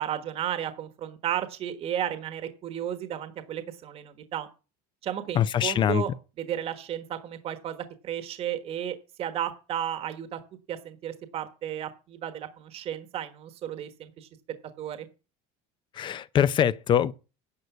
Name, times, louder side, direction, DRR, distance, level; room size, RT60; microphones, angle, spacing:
voice 1, 0.0-4.5 5.0-6.1 6.4-10.4 10.7-14.3 14.8-15.1, right 10 dB, 40° right, 1.3 m, -33 dB
voice 2, 5.4-6.0 16.0-17.1, left 9 dB, 30° left, 0.5 m, -23 dB
11.0 x 6.7 x 8.0 m
cardioid pair, 155°, 16 cm